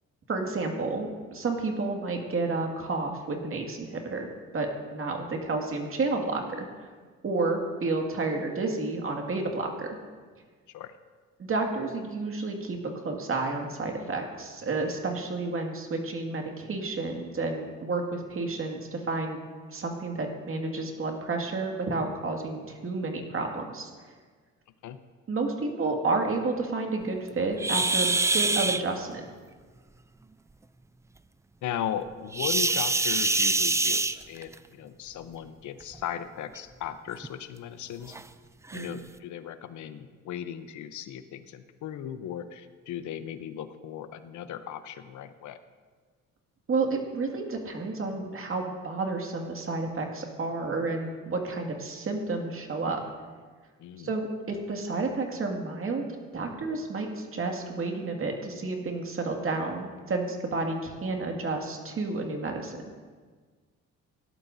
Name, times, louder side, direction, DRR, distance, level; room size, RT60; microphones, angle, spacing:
voice 1, 0.3-4.3 4.5-6.9 7.2-9.9 11.4-19.4 19.7-23.9 25.3-29.3 38.7-38.9 46.7-53.0 54.0-56.0 56.3-62.8, right 3 dB, 45° right, 2 dB, 2.1 m, -31 dB
sound 1, 27.6-28.8 32.3-34.6 35.8-36.0 36.6-36.7 37.2-37.3 38.1-38.2 38.7-38.9, right 3 dB, 10° right, 0.3 m, -25 dB
voice 2, 31.6-38.2 38.7-45.6 53.8-54.1, left 9 dB, 75° left, 11 dB, 0.8 m, -37 dB
17.5 x 12.0 x 2.7 m, 1.5 s
cardioid pair, 90°, 30 cm